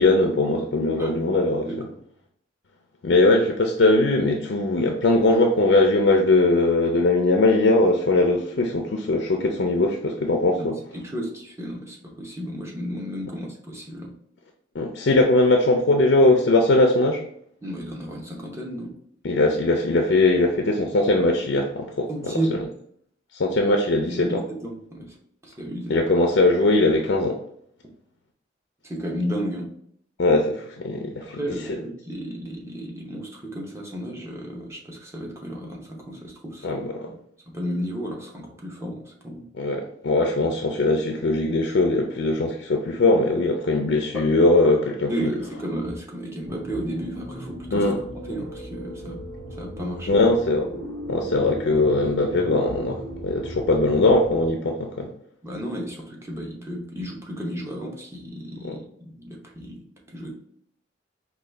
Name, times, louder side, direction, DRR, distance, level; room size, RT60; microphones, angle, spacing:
voice 1, 0.0-1.9 3.0-10.8 14.7-17.2 19.2-22.4 23.3-24.4 25.9-27.4 30.2-31.4 31.7-31.8 36.6-37.1 39.6-45.3 47.7-48.0 50.1-50.6 51.1-55.1 58.6-58.8, left 2 dB, 65° left, 2 dB, 0.4 m, -20 dB
voice 2, 1.6-2.0 10.6-10.7 10.9-14.1 17.6-18.9 22.1-22.6 24.0-25.2 25.4-26.0 28.8-29.7 31.2-36.8 37.5-39.5 44.1-44.3 45.1-47.9 48.3-49.2 49.6-50.3 55.4-59.8 60.1-60.3, equal, 15° right, -1 dB, 0.7 m, -33 dB
sound 1, 46.5-54.5, equal, 60° right, 1.2 m, -37 dB
4.7 x 2.3 x 3.3 m, 0.67 s
head